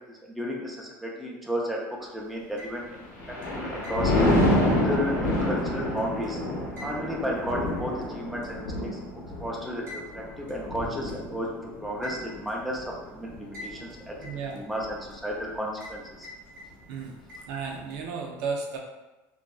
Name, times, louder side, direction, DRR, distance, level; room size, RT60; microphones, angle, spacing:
voice 1, 0.1-4.1 4.6-6.4 6.8-9.0 9.4-14.2 14.5-16.3, equal, ahead, -3 dB, 0.4 m, -33 dB
sound 1, 2.4-3.0 3.4-6.3 6.8-8.0 8.4-8.5 9.9-10.1 10.5-10.6 11.1-11.2 12.0-12.6 13.5-13.9 14.2-15.1 15.8-16.0 16.2-17.0 17.3-18.0, equal, 35° right, 0.8 m, -45 dB
Thunder, 2.9-14.4 14.8-15.1, left 1 dB, 85° left, 0.8 m, -28 dB
voice 2, 14.2-14.6 16.8-17.2 17.5-18.8, right 5 dB, 75° right, 0 dB, 0.5 m, -33 dB
2.6 x 2.1 x 2.2 m, 1.1 s
cardioid pair, 130°, 7 cm